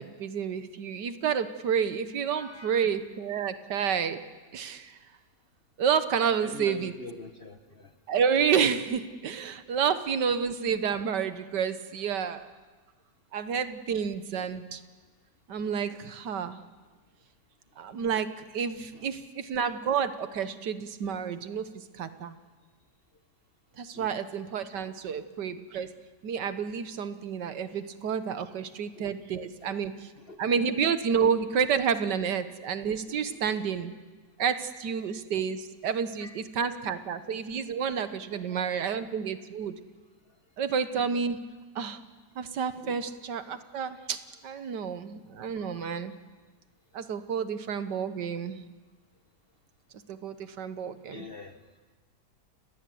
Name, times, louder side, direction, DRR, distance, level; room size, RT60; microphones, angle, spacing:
voice 1, 0.0-4.2 4.5-5.0 5.8-6.9 8.1-12.5 13.3-14.8 15.5-16.6 17.8-22.4 23.8-25.9 26.2-30.1 30.4-33.9 34.4-39.8 40.6-41.4 41.7-42.0 42.3-44.2 44.4-46.1 46.9-48.6 50.1-51.3, right 7 dB, 75° right, 11 dB, 1.7 m, -30 dB
voice 2, 2.3-2.9 6.4-7.9 18.9-19.1 23.9-24.1 25.0-25.2 27.7-27.8 28.6-29.1 29.6-29.7 30.2-30.4 33.1-33.5 36.2-36.4 37.7-37.8 38.3-38.7 42.8-43.0 44.6-44.9 45.5-46.0 51.1-51.6, left 3 dB, 35° left, 8 dB, 1.2 m, -46 dB
30.0 x 18.5 x 7.7 m, 1.4 s
omnidirectional pair, 1.9 m